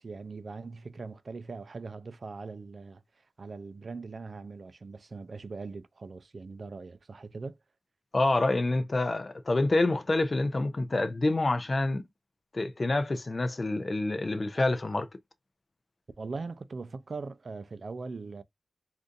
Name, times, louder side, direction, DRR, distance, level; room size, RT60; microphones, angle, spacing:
voice 1, 0.0-3.0 3.4-7.6 16.2-18.4, right 4 dB, 55° right, 0.4 m, -41 dB
voice 2, 8.1-12.0 12.5-15.1, left 2 dB, 40° left, 0.5 m, -27 dB
3.8 x 2.6 x 2.5 m
wide cardioid pair, 80°, 0 cm